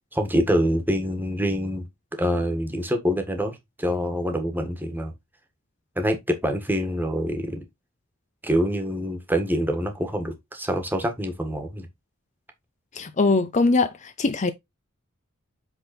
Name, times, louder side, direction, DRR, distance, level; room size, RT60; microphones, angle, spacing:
voice 1, 0.1-1.9 2.1-5.1 5.9-7.6 8.4-11.9, equal, 10° right, 1.5 m, -25 dB
voice 2, 12.9-14.5, left 3 dB, 35° left, 0.6 m, -22 dB
8.0 x 3.9 x 4.2 m
head